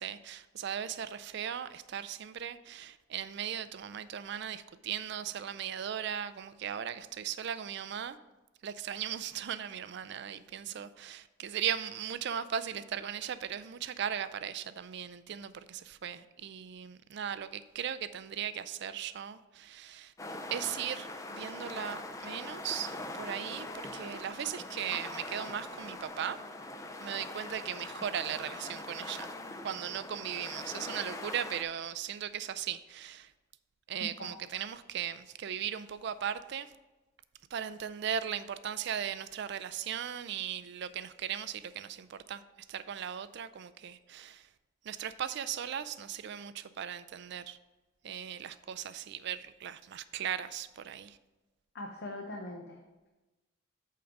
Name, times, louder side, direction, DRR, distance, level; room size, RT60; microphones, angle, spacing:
voice 1, 0.0-8.2 8.6-20.1 20.5-26.4 27.0-29.3 29.6-33.3 33.9-36.7 37.5-42.4 42.7-44.5 44.8-47.6 48.0-51.2, right 9 dB, 55° right, 0.4 m, -38 dB
sound 1, 20.2-31.6, left 2 dB, 15° left, 0.4 m, -42 dB
voice 2, 51.7-52.8, left 1 dB, 55° left, 0.7 m, -41 dB
8.6 x 3.8 x 5.8 m
head